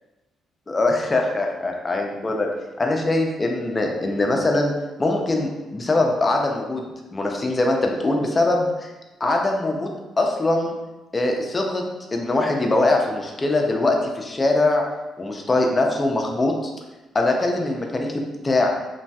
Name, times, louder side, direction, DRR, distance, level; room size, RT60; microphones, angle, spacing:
voice 1, 0.7-2.5 2.8-4.7 5.0-6.8 7.1-8.9 9.2-10.7 11.1-11.8 12.1-14.8 15.2-16.7 17.1-18.7, left 2 dB, 25° left, 1 dB, 0.5 m, -22 dB
3.1 x 2.5 x 2.3 m, 1.1 s
cardioid pair, 90°, 0 cm